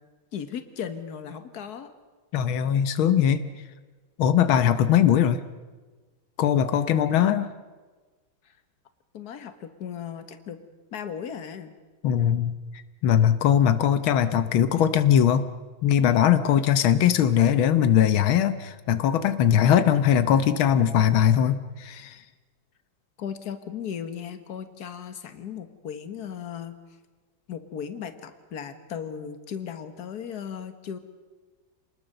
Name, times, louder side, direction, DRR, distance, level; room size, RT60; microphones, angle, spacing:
voice 1, 0.3-1.9 7.4-7.5 8.4-8.5 9.1-10.6 10.9-11.7 19.7-20.0 23.2-26.8 27.5-31.0, left 8 dB, 55° left, 9 dB, 1.9 m, -36 dB
voice 2, 2.3-3.4 4.2-5.4 6.4-7.5 12.0-12.5 13.0-15.5 15.8-22.2, left 9 dB, 85° left, 11 dB, 1.8 m, -20 dB
27.5 x 20.0 x 6.7 m, 1.3 s
omnidirectional pair, 2.2 m